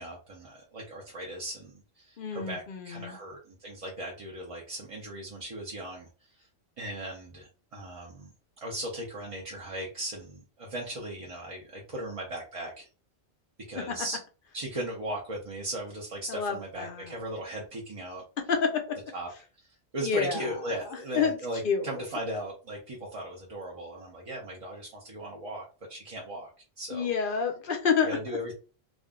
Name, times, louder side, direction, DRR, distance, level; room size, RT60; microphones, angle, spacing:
voice 1, 0.0-6.1 6.4-6.5 6.8-8.3 8.6-12.9 13.7-14.2 14.5-18.2 19.1-19.3 19.6-26.5 26.8-27.1 28.0-28.5, right 1 dB, 40° right, -2 dB, 0.6 m, -37 dB
voice 2, 2.2-3.2 13.8-14.0 16.3-17.1 18.5-19.0 20.0-20.4 21.1-21.4 21.6-21.9 26.9-28.1, left 6 dB, 60° left, 5 dB, 0.7 m, -28 dB
2.5 x 2.0 x 3.5 m, 0.35 s
omnidirectional pair, 1.1 m